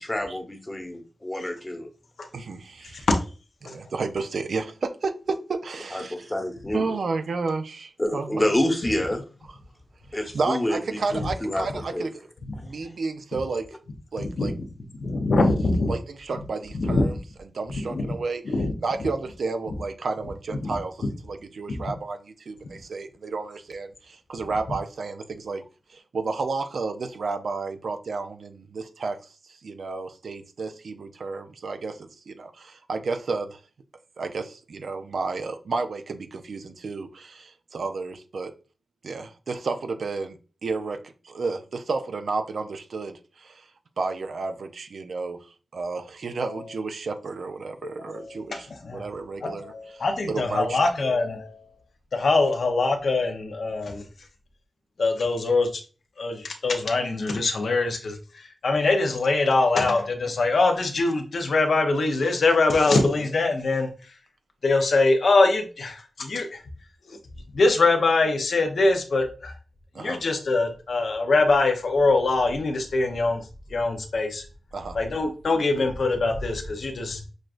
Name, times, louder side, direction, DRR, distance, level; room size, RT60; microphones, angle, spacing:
voice 1, 0.0-1.9 5.9-6.8 8.0-9.2 10.1-11.7 11.9-12.1, left 1 dB, 20° left, 0.9 m, -27 dB
voice 2, 2.3-3.1 3.6-6.3 6.7-8.5 10.1-12.3 12.6-13.8 14.1-14.5 15.9-17.1 17.5-18.4 18.8-25.6 25.9-33.6 34.2-38.5 39.0-43.7 44.0-51.1 63.2-63.3 69.9-70.2 74.7-75.0, right 4 dB, 75° right, 0.4 m, -32 dB
voice 3, 14.2-14.5 15.0-15.9 16.7-17.1 17.7-18.1 18.5-18.7 20.6-20.7 46.4-46.5 48.0-48.3 48.8-49.0 49.4-51.6 52.1-54.0 55.0-55.8 56.2-63.9 64.6-66.6 67.1-67.2 67.5-69.5 70.0-73.4 73.7-74.5 74.9-77.2, left 3 dB, 75° left, 0.7 m, -23 dB
6.2 x 2.3 x 2.5 m
cardioid pair, 55°, 0 cm